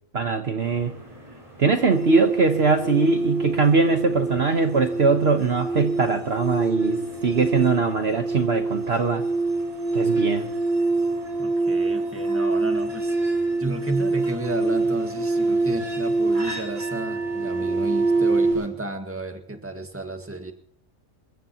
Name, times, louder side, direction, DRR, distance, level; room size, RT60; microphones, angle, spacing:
voice 1, 0.1-0.9 1.6-9.2 9.9-10.5, right 4 dB, 50° right, 6 dB, 1.3 m, -21 dB
sound 1, 0.6-18.7, right 1 dB, 25° right, 4.1 m, -45 dB
sound 2, 1.9-18.5, right 3 dB, 80° right, 5.8 m, -25 dB
voice 2, 11.4-13.2 13.6-20.5, right 2 dB, 10° right, 5 dB, 1.7 m, -32 dB
27.5 x 15.0 x 2.9 m, 0.62 s
omnidirectional pair, 1.4 m